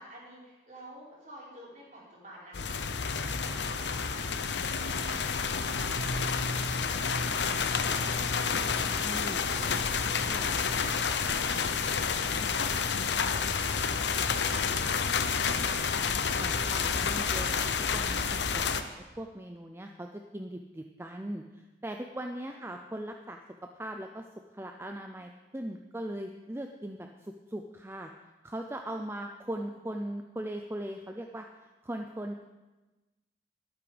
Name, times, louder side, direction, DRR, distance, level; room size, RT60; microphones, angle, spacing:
voice 1, 0.0-4.3 4.7-9.7 10.0-16.2 22.4-22.7 29.1-29.7, right 1 dB, 40° right, -6 dB, 5.0 m, -50 dB
sound 1, 2.5-18.8, left 5 dB, 75° left, 0.8 m, -29 dB
voice 2, 8.9-9.4 10.3-10.6 13.1-13.3 16.4-18.2 18.5-18.9 19.2-23.4 23.7-24.3 24.5-28.1 28.4-31.5 31.8-32.4, right 1 dB, 15° right, 4 dB, 0.5 m, -39 dB
13.0 x 12.0 x 5.1 m, 1.1 s
head